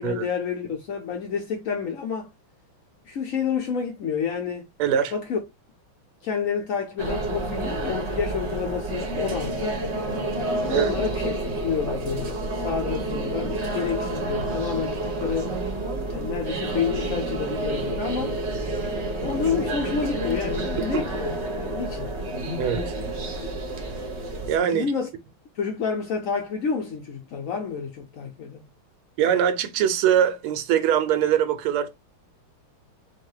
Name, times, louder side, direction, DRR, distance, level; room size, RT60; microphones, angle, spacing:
voice 1, 0.0-2.3 3.1-4.7 5.1-5.4 6.2-9.8 10.7-15.6 16.1-18.4 19.2-22.1 22.8-23.0 24.7-25.1 25.6-28.6, left 6 dB, 70° left, 0.7 m, -29 dB
voice 2, 4.8-5.1 10.7-11.0 19.6-19.7 22.6-23.0 24.5-24.9 29.2-31.9, right 9 dB, 85° right, 1.6 m, -22 dB
sound 1, 7.0-24.6, right 2 dB, 50° right, 0.8 m, -29 dB
4.6 x 2.2 x 4.7 m
omnidirectional pair, 2.4 m